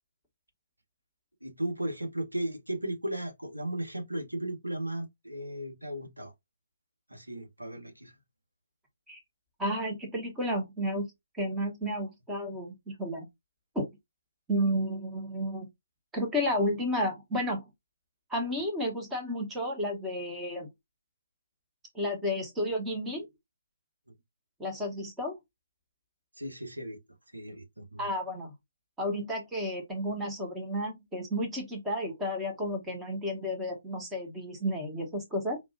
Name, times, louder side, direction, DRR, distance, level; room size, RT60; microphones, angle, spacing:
voice 1, 1.4-6.3 7.1-8.1 26.4-27.0 27.3-28.1, right 1 dB, 85° right, 1.3 m, -36 dB
voice 2, 9.6-11.0 11.3-13.3 13.7-13.9 14.5-15.7 16.1-17.6 18.3-20.7 21.9-23.3 24.6-25.4 28.0-28.5 29.0-35.6, equal, 10° right, 1.1 m, -32 dB
4.9 x 2.7 x 2.6 m
figure-of-eight pair, 140°, 0 cm